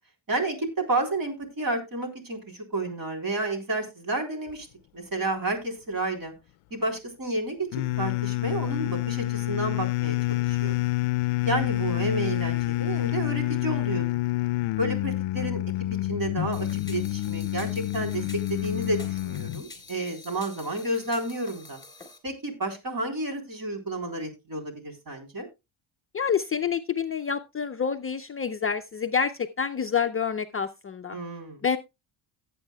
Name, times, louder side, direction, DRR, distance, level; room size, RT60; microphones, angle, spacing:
voice 1, 0.3-4.7 4.9-6.3 6.7-7.7 8.0-10.7 11.4-14.1 14.8-15.6 16.1-21.8 22.2-25.5 31.1-31.6, right 2 dB, 45° right, 4 dB, 3.8 m, -31 dB
sound 1, 7.7-19.6, left 18 dB, 80° left, 0.5 m, -28 dB
sound 2, 16.5-22.2, left 2 dB, 10° left, 3.4 m, -48 dB
voice 2, 26.1-31.2 31.6-31.8, left 6 dB, 30° left, 7 dB, 0.5 m, -28 dB
17.0 x 8.3 x 2.3 m, 0.24 s
cardioid pair, 115°, 48 cm